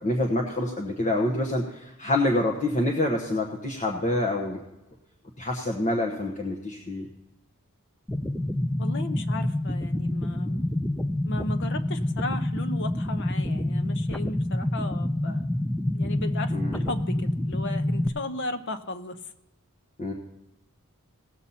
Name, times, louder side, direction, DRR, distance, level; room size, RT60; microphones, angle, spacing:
voice 1, 0.0-4.6 5.4-7.1 16.5-16.8 20.0-20.1, left 1 dB, 35° left, 1 dB, 1.1 m, -26 dB
sound 1, 8.1-18.1, left 1 dB, 5° left, 0.4 m, -27 dB
voice 2, 8.8-10.7 11.2-15.5 15.8-19.3, left 2 dB, 55° left, 9 dB, 0.8 m, -36 dB
18.0 x 7.2 x 4.2 m, 0.95 s
head